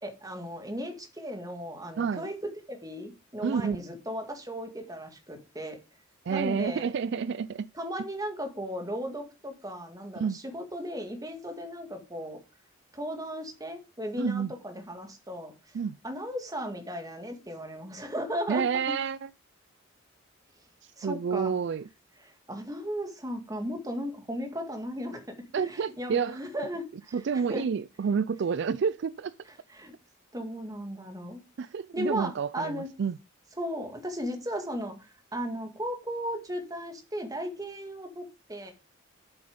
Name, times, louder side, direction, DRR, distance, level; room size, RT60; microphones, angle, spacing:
voice 1, 0.0-5.8 6.3-6.9 7.7-12.4 12.9-19.0 21.0-21.6 22.2-27.7 28.4-28.6 29.5-29.9 30.3-31.4 31.9-32.9 33.5-35.0 35.3-38.7, equal, 20° right, 1.9 m, -36 dB
voice 2, 2.0-2.3 3.4-3.8 6.3-7.7 10.2-10.4 14.2-14.5 15.7-16.0 18.5-19.3 21.0-21.8 25.5-26.4 27.1-29.3 31.6-33.2, right 6 dB, 60° right, 0.4 m, -29 dB
7.9 x 7.1 x 5.1 m
head